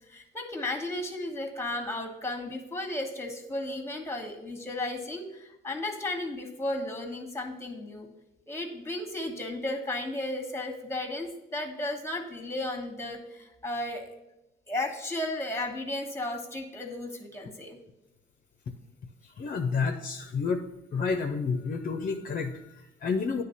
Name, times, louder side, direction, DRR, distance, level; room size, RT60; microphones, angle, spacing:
voice 1, 0.1-8.1 8.5-14.1 14.7-17.8, left 1 dB, 15° left, 4 dB, 1.2 m, -34 dB
voice 2, 19.4-23.4, left 5 dB, 45° left, 5 dB, 0.6 m, -30 dB
9.3 x 3.3 x 5.6 m, 0.90 s
cardioid pair, 90°, 20 cm